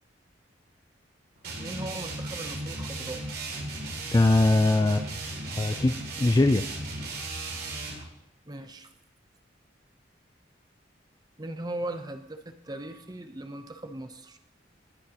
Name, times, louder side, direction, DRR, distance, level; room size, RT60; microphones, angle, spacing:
sound 1, 1.4-8.0, right 2 dB, 55° right, 2.6 m, -36 dB
voice 1, 1.6-3.2 8.5-8.9 11.4-14.4, right 1 dB, 20° right, 8 dB, 0.8 m, -38 dB
voice 2, 4.1-5.0 5.5-6.6, left 2 dB, 20° left, 9 dB, 0.3 m, -21 dB
19.0 x 8.6 x 3.0 m, 0.79 s
head